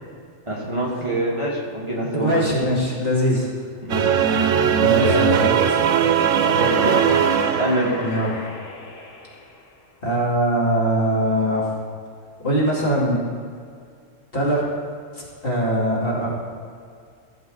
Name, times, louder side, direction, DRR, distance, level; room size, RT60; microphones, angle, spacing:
voice 1, 0.5-2.5 3.8-4.1 5.0-5.3 6.4-7.0 7.5-8.0, right 1 dB, 25° right, -5 dB, 1.7 m, -24 dB
voice 2, 2.2-3.5 4.8-5.5 8.0-8.3 10.0-11.6 12.4-13.2 14.3-14.7 15.1-16.3, equal, 45° left, -6 dB, 2.4 m, -21 dB
sound 1, 3.9-8.3, right 8 dB, 85° right, 1.0 m, -19 dB
sound 2, 6.2-10.0, left 3 dB, 75° left, 1.6 m, -35 dB
15.0 x 7.3 x 3.8 m, 2.2 s
omnidirectional pair, 1.4 m